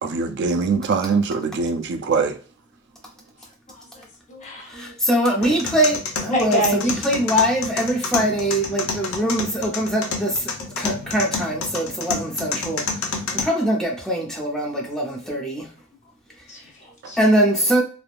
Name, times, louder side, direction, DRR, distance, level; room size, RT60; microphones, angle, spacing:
voice 1, 0.0-2.4 17.0-17.1, right 4 dB, 55° right, 0.4 m, -22 dB
voice 2, 3.7-4.9 6.3-6.8 13.2-13.4 16.5-17.2, equal, 35° left, 0.9 m, -28 dB
voice 3, 4.7-15.7 17.2-17.8, right 1 dB, 5° left, 0.7 m, -22 dB
sound 1, 5.4-13.4, left 4 dB, 75° left, 0.7 m, -29 dB
3.3 x 2.3 x 2.4 m
head